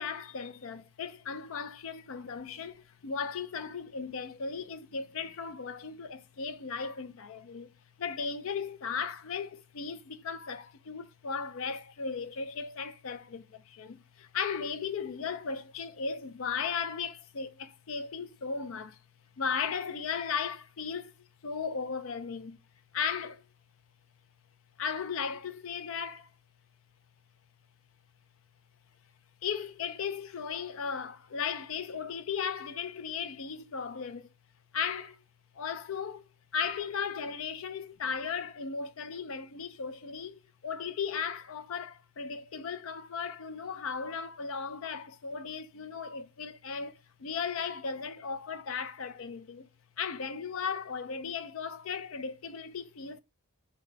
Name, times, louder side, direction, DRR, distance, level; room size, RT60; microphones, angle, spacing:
voice 1, 0.0-7.7 8.0-19.0 19.4-21.1 21.4-22.6 22.9-23.4 24.8-26.3 29.4-34.3 34.7-35.2 35.5-36.2 36.5-49.7 50.0-53.2, left 6 dB, 75° left, 0.5 m, -36 dB
2.8 x 2.1 x 3.9 m
head